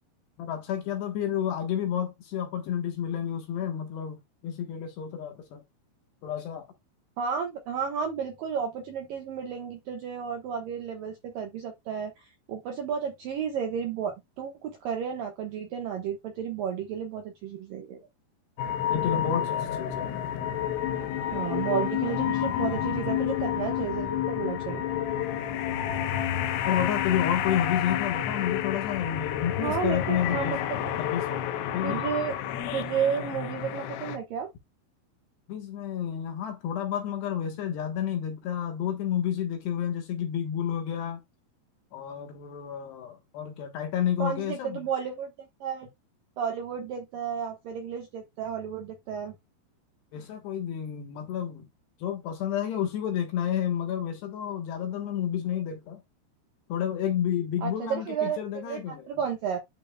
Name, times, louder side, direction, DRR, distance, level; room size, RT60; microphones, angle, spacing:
voice 1, 0.4-5.6 6.2-6.7 18.9-20.1 26.7-30.7 31.0-31.5 31.7-32.1 35.5-41.2 41.9-44.9 50.1-51.7 52.0-56.0 56.7-59.1, left 9 dB, 65° left, 3.1 m, -30 dB
voice 2, 7.2-18.0 21.3-24.8 29.6-30.9 31.8-32.3 32.7-34.5 44.2-45.9 46.4-49.3 57.6-59.6, right 7 dB, 70° right, 2.2 m, -32 dB
sound 1, 18.6-34.2, left 10 dB, 85° left, 3.6 m, -30 dB
11.5 x 5.4 x 2.3 m
omnidirectional pair, 5.7 m